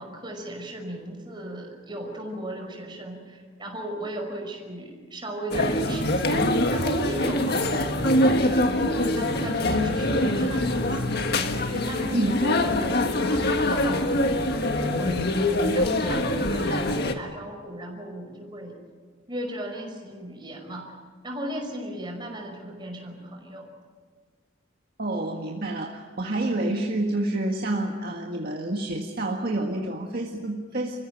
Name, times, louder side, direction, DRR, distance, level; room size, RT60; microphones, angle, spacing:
voice 1, 0.0-11.3 11.7-12.9 13.2-18.8 19.3-20.9 21.2-23.7, right 1 dB, 25° right, 1 dB, 5.5 m, -36 dB
sound 1, 5.5-17.1, left 1 dB, 55° left, 1.7 m, -24 dB
voice 2, 25.0-31.0, right 2 dB, 50° right, 0 dB, 1.8 m, -28 dB
28.5 x 15.5 x 9.1 m, 1.5 s
head